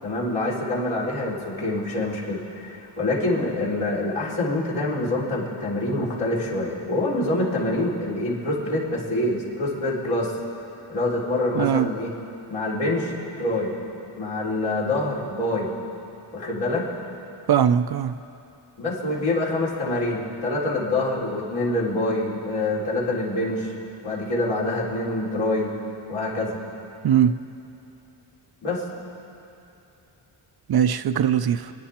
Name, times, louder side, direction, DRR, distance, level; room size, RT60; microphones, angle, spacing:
voice 1, 0.0-10.3 10.9-12.1 12.5-13.7 14.2-15.7 16.3-16.9 18.8-23.7 24.0-25.7 26.1-26.6 28.6-28.8, left 2 dB, 70° left, -6 dB, 4.0 m, -26 dB
voice 2, 11.5-11.9 17.5-18.2 27.0-27.3 30.7-31.7, right 9 dB, 50° right, 11 dB, 0.5 m, -20 dB
27.5 x 10.0 x 4.3 m, 2.8 s
cardioid pair, 80°, 50 cm